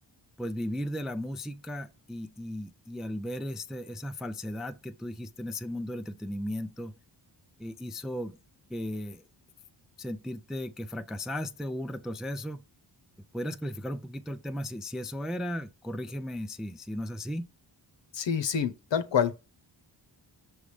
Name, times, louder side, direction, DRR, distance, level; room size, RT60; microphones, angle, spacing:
voice 1, 0.4-6.9 7.6-8.4 8.7-9.2 10.0-12.6 13.3-17.5, equal, ahead, 0.3 m, -36 dB
voice 2, 18.1-19.4, left 7 dB, 70° left, 1.0 m, -27 dB
6.2 x 3.5 x 4.8 m
wide cardioid pair, 125°, 46 cm